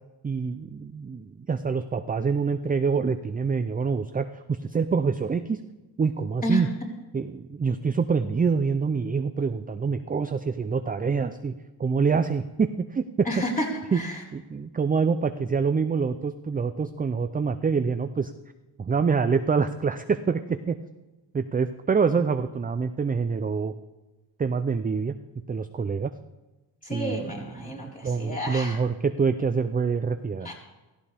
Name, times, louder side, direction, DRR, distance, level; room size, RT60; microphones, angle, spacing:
voice 1, 0.2-5.6 6.0-6.7 7.1-11.5 11.8-13.3 13.9-14.0 14.3-18.3 18.8-20.8 21.3-23.7 24.4-25.2 25.5-26.1 26.9-30.5, right 5 dB, 20° right, 10 dB, 0.4 m, -26 dB
voice 2, 13.2-13.7 13.9-14.2 26.8-28.8 30.4-30.5, left 1 dB, 20° left, -5 dB, 4.4 m, -30 dB
16.0 x 15.0 x 3.5 m, 1.1 s
wide cardioid pair, 125°, 43 cm